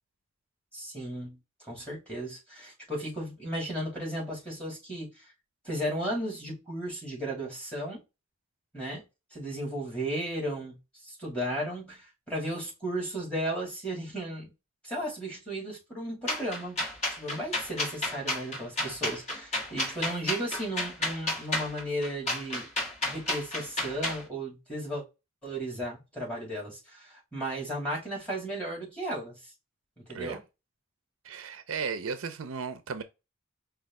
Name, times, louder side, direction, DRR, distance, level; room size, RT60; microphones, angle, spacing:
voice 1, 0.7-5.3 5.6-8.0 8.7-9.0 9.3-10.8 11.0-14.5 14.8-16.8 17.1-22.7 23.1-25.0 25.4-29.5 30.1-30.4, right 1 dB, 5° left, 2.4 m, -35 dB
sound 1, 16.3-24.2, left 1 dB, 30° left, 1.6 m, -31 dB
voice 2, 31.2-33.0, right 5 dB, 70° right, 0.5 m, -35 dB
5.2 x 2.4 x 3.5 m
head